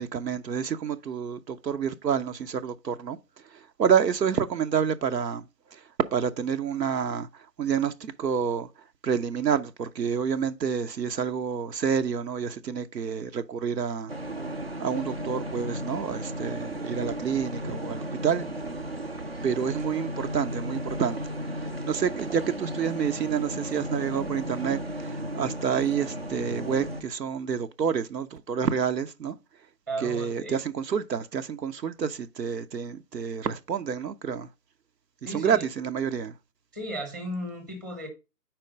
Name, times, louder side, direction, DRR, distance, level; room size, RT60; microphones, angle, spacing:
voice 1, 0.0-3.2 3.4-5.5 5.7-5.8 6.1-8.7 9.0-14.1 14.5-18.5 19.4-29.4 30.0-34.5 35.2-36.3, right 7 dB, 85° right, 0.7 m, -28 dB
sound 1, 14.1-27.0, right 1 dB, 40° right, 0.4 m, -34 dB
voice 2, 29.9-30.5 35.2-35.6 36.7-38.1, right 1 dB, 10° right, 0.8 m, -35 dB
4.7 x 4.4 x 5.0 m
figure-of-eight pair, 150°, 49 cm